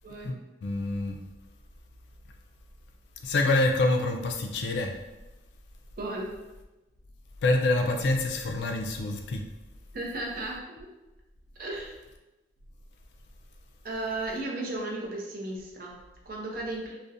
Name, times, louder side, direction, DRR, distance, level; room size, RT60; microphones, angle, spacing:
voice 1, 0.2-1.2 3.2-4.9 7.4-9.4, left 2 dB, 80° left, 3 dB, 0.3 m, -26 dB
voice 2, 6.0-6.3 9.9-10.9 11.6-11.9 13.8-17.0, right 2 dB, 55° right, -2 dB, 0.5 m, -35 dB
2.4 x 2.0 x 2.6 m, 1.0 s
head